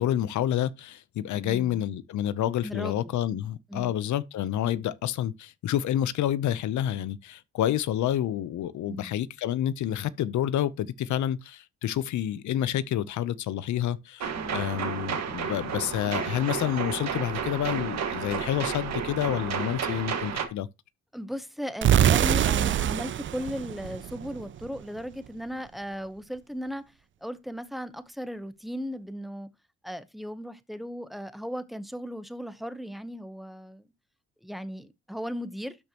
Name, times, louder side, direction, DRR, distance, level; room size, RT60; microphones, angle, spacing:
voice 1, 0.0-20.7, left 11 dB, 70° left, 0.7 m, -29 dB
voice 2, 2.6-3.1 3.7-3.9 8.9-9.2 14.4-14.6 21.1-26.9 27.2-29.5 29.8-33.9 34.4-35.8, equal, ahead, 0.9 m, -36 dB
sound 1, 14.2-20.5, right 7 dB, 60° right, 1.7 m, -32 dB
sound 2, 21.8-24.7, right 10 dB, 40° right, 0.4 m, -24 dB
12.0 x 5.3 x 3.0 m
cardioid pair, 90°, 30 cm